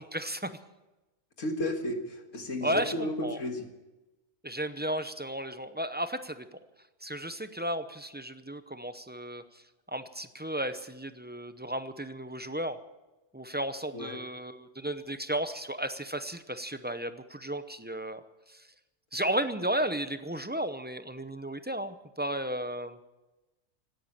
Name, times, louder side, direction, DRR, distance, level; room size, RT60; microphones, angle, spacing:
voice 1, 0.1-0.5 2.6-3.4 4.4-6.6 7.0-9.4 9.9-12.8 13.3-18.2 18.5-18.7 19.1-23.0, right 1 dB, 10° right, 10 dB, 0.5 m, -34 dB
voice 2, 1.4-3.7 13.9-14.2, left 1 dB, 85° left, 5 dB, 2.1 m, -33 dB
17.0 x 9.5 x 8.9 m, 1.1 s
omnidirectional pair, 1.3 m